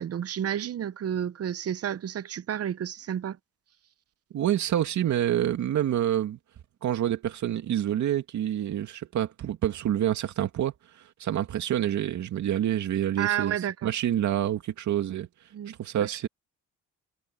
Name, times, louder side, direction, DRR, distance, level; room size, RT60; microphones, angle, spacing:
voice 1, 0.0-3.4 13.2-13.9 15.5-16.1, right 9 dB, 55° right, 0.9 m, -31 dB
voice 2, 4.3-6.4 6.8-10.7 11.2-13.5 13.8-15.3 15.8-16.3, right 11 dB, 70° right, 2.6 m, -27 dB
cardioid pair, 90°, 30 cm